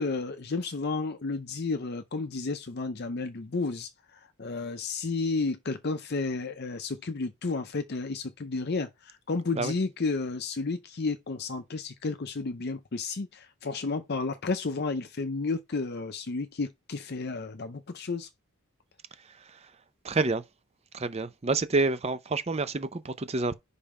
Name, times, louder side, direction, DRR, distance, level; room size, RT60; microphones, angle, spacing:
voice 1, 0.0-18.3, left 3 dB, 45° left, 0.6 m, -32 dB
voice 2, 20.0-20.4 20.9-23.5, right 3 dB, 30° right, 0.5 m, -28 dB
5.4 x 4.1 x 4.8 m
head